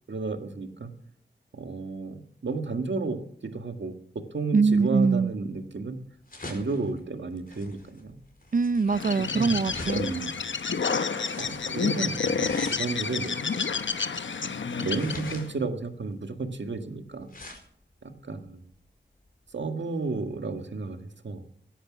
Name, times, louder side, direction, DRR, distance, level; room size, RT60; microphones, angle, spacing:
voice 1, 0.1-0.9 1.5-4.0 4.3-6.0 6.5-8.2 9.3-9.6 9.9-10.3 11.4-13.4 13.8-13.9 14.8-17.3 18.0-18.6 19.5-21.4, right 3 dB, 75° right, 1.9 m, -32 dB
voice 2, 4.5-5.3 8.5-10.0, right 4 dB, 45° right, 0.5 m, -23 dB
sound 1, 5.2-19.5, left 2 dB, 50° left, 4.6 m, -46 dB
Bird, 8.9-15.5, left 5 dB, 80° left, 1.0 m, -30 dB
17.5 x 10.0 x 6.2 m
wide cardioid pair, 55°, 19 cm